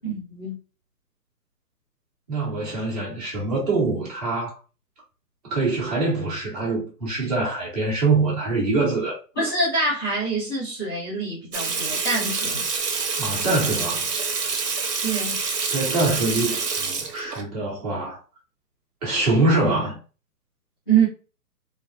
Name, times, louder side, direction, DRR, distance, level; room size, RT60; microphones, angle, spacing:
voice 1, 0.0-0.6 8.8-8.9 9.4-12.7 15.0-15.4 20.9-21.1, right 4 dB, 15° left, 0.7 m, -25 dB
voice 2, 2.3-4.6 5.4-9.2 13.2-14.1 15.7-18.2 19.0-20.0, right 3 dB, 25° right, 1.4 m, -24 dB
Water tap faucet / Sink (filling or washing), 11.5-17.4, right 5 dB, 70° right, 1.1 m, -27 dB
3.9 x 2.1 x 2.6 m
hypercardioid pair, 170°, 49 cm